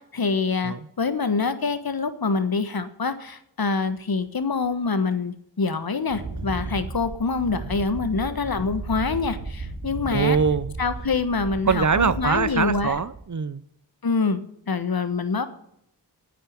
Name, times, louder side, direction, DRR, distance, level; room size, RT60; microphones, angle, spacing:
voice 1, 0.1-10.4 10.8-13.0 14.0-14.4 14.7-15.5, left 4 dB, 55° left, 11 dB, 1.5 m, -25 dB
Wind, 6.1-13.2, right 3 dB, 75° right, 4.3 m, -35 dB
voice 2, 10.1-10.7 11.7-13.6, right 5 dB, 40° right, 16 dB, 0.8 m, -23 dB
9.4 x 9.0 x 9.6 m, 0.74 s
cardioid pair, 55°, 44 cm